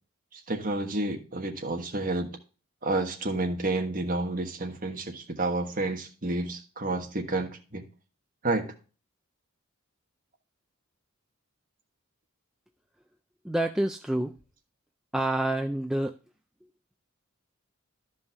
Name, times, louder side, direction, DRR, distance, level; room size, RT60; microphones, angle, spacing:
voice 1, 0.3-2.3 2.8-7.8 8.4-8.7, right 2 dB, 40° right, 3 dB, 1.4 m, -30 dB
voice 2, 13.4-14.4 15.1-16.2, right 1 dB, 5° right, 5 dB, 0.3 m, -27 dB
12.5 x 5.4 x 3.4 m, 0.35 s
head